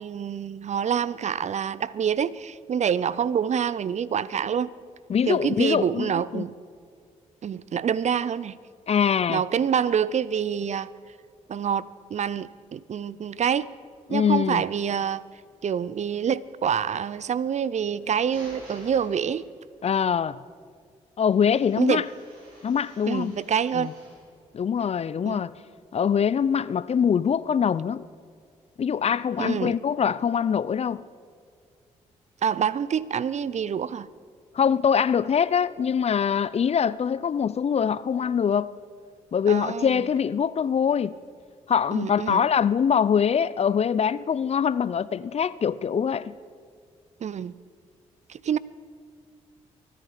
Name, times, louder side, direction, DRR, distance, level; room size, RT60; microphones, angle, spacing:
voice 1, 0.0-4.7 5.3-6.5 7.4-8.6 9.3-10.9 11.5-13.7 14.1-15.2 15.6-19.5 21.8-22.0 23.1-23.9 25.2-25.4 29.4-29.8 32.4-34.1 39.5-40.0 41.9-42.4 47.2-47.5 48.3-48.6, right 8 dB, 50° right, 0.5 m, -26 dB
voice 2, 5.1-6.4 8.9-9.4 14.1-14.6 19.8-20.4 21.2-22.1 22.6-23.4 23.7-23.9 24.5-25.5 25.9-28.0 28.8-31.0 34.5-38.7 39.3-41.2 41.7-46.3, left 7 dB, 45° left, 0.5 m, -23 dB
sound 1, 17.8-19.7 21.3-24.3, equal, 80° right, 5.0 m, -50 dB
23.5 x 9.9 x 5.1 m
hypercardioid pair, 45°, 15 cm